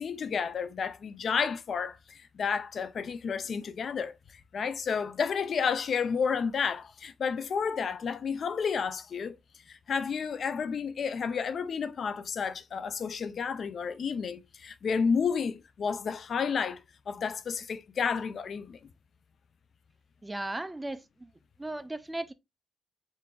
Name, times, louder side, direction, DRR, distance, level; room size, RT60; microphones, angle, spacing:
voice 1, 0.0-4.1 4.5-9.3 9.7-18.8, left 6 dB, 60° left, 0.4 m, -31 dB
voice 2, 20.2-21.3 21.6-22.3, right 2 dB, 15° right, 0.4 m, -36 dB
3.7 x 3.7 x 2.2 m
cardioid pair, 90°, 0 cm